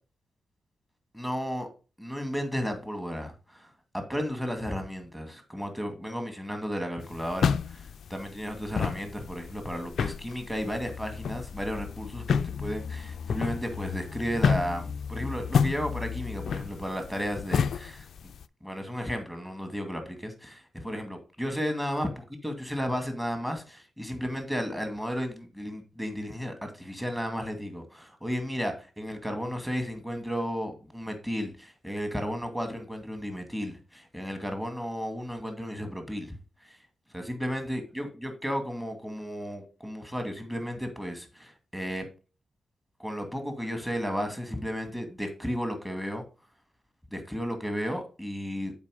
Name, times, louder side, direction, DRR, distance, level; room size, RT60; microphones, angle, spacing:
voice 1, 1.1-1.7 2.0-3.7 3.9-18.1 18.6-22.1 22.4-36.3 36.6-36.8 37.1-42.1 43.0-46.2 47.1-48.7, equal, 5° right, 2.1 m, -33 dB
sound 1, 7.0-18.4, left 7 dB, 70° left, 0.3 m, -31 dB
7.3 x 4.9 x 4.9 m
cardioid pair, 85°, 0 cm